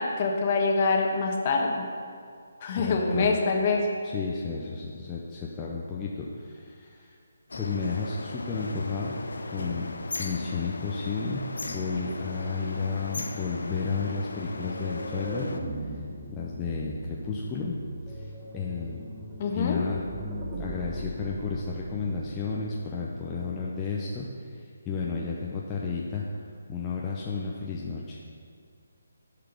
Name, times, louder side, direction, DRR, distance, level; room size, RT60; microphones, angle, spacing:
voice 1, 0.0-1.8 2.6-3.8 19.4-19.8, left 4 dB, 35° left, 1 dB, 1.3 m, -25 dB
voice 2, 2.7-3.4 4.0-7.2 7.5-9.2 9.5-9.9 10.2-15.5 15.8-16.0 16.3-17.8 18.1-19.1 19.5-20.1 20.6-28.2, left 4 dB, 15° left, -4 dB, 0.7 m, -32 dB
sound 1, 7.5-15.6, left 2 dB, 65° left, 0.8 m, -37 dB
sound 2, 14.3-23.0, right 1 dB, 15° right, 1.1 m, -39 dB
10.5 x 5.1 x 6.0 m, 2.2 s
figure-of-eight pair, 145°, 0 cm